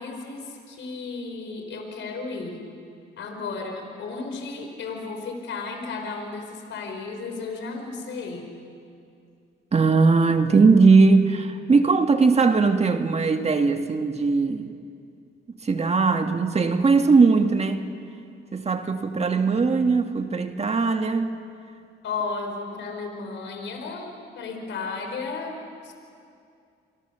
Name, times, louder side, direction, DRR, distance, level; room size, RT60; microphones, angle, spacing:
voice 1, 0.0-2.6 3.2-8.5 22.0-25.9, left 4 dB, 70° left, 4.9 m, -34 dB
voice 2, 9.7-14.7 15.6-17.8 18.5-21.3, right 4 dB, 30° right, 1.8 m, -19 dB
28.5 x 24.0 x 7.0 m
cardioid pair, 90°, 20 cm